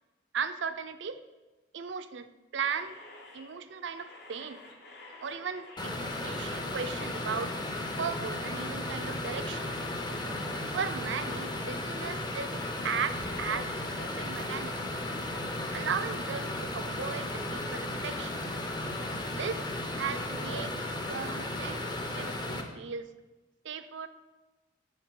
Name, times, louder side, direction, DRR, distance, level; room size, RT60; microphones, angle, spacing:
voice 1, 0.3-1.2 1.7-2.3 2.5-3.0 3.3-4.6 5.2-7.6 8.0-9.7 10.7-12.5 12.8-14.9 15.7-18.4 19.4-19.6 20.0-20.8 21.1-21.8 22.2-23.1 23.6-24.1, right 6 dB, 70° right, 11 dB, 0.5 m, -36 dB
sound 1, 2.6-22.3, left 2 dB, 55° left, 1.2 m, -51 dB
sound 2, 5.8-22.6, left 1 dB, 20° left, 0.7 m, -35 dB
13.5 x 4.6 x 3.7 m, 1.2 s
head